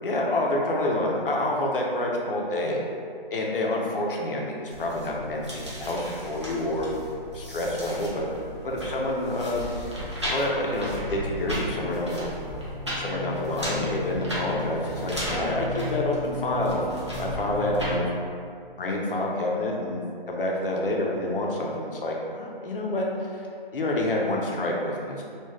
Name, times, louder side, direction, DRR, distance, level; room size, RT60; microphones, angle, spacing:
voice 1, 0.0-2.8 3.3-6.9 7.3-8.3 8.6-9.9 10.3-12.3 13.0-16.8 17.2-18.0 18.8-20.0 20.3-23.5 23.7-25.2, left 1 dB, 65° left, -1 dB, 0.6 m, -28 dB
sound 1, 4.7-18.0, equal, 30° right, 0.4 m, -34 dB
3.2 x 2.3 x 2.3 m, 2.3 s
hypercardioid pair, 170°, 29 cm